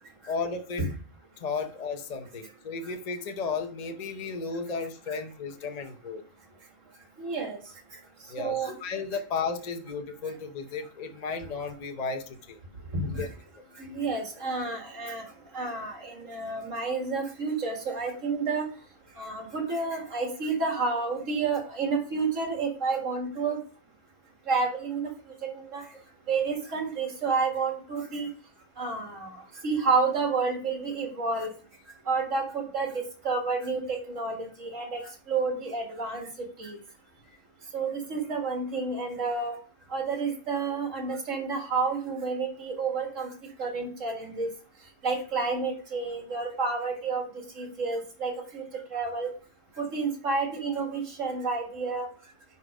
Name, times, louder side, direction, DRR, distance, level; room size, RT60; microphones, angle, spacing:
voice 1, 0.3-0.8 1.4-6.2 8.3-12.6 13.2-13.3, left 4 dB, 35° left, 6 dB, 0.8 m, -34 dB
voice 2, 7.2-7.6 8.4-8.7 12.9-13.3 13.8-15.3 15.5-18.7 19.2-23.6 24.5-25.1 25.4-25.8 26.3-28.3 28.8-31.5 32.1-35.0 35.3-36.3 36.6-36.8 37.7-39.6 39.9-43.3 43.6-44.5 45.0-47.2 47.6-48.6 48.9-49.3 49.8-52.1, right 4 dB, 70° right, 2 dB, 2.3 m, -30 dB
9.8 x 4.2 x 4.9 m, 0.41 s
omnidirectional pair, 1.4 m